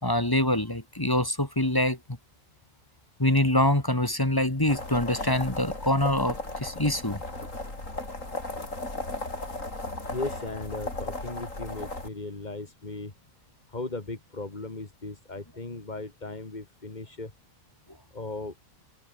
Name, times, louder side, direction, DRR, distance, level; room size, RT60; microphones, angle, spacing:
voice 1, 0.0-2.0 3.2-7.2, left 1 dB, 15° left, 2.0 m, -25 dB
sound 1, 4.7-12.1, left 2 dB, 70° left, 6.5 m, -36 dB
voice 2, 10.1-13.1 13.7-17.3 18.1-18.5, left 2 dB, 35° left, 2.7 m, -37 dB
omnidirectional pair, 1.4 m